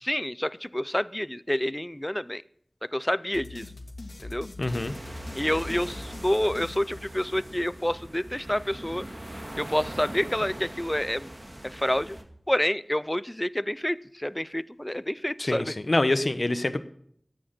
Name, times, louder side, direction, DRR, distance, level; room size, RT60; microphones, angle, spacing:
voice 1, 0.0-2.4 2.9-3.6 4.2-4.5 5.3-9.1 9.6-11.3 11.6-12.2 12.5-15.8, left 1 dB, 15° left, 18 dB, 0.5 m, -28 dB
sound 1, 3.3-7.6, left 2 dB, 75° left, 2.5 m, -42 dB
voice 2, 4.6-4.9 15.4-16.8, left 2 dB, 55° left, 11 dB, 1.0 m, -25 dB
sound 2, 4.7-12.2, right 1 dB, 30° right, 2.1 m, -41 dB
13.5 x 8.9 x 7.7 m, 0.65 s
wide cardioid pair, 55°, 0 cm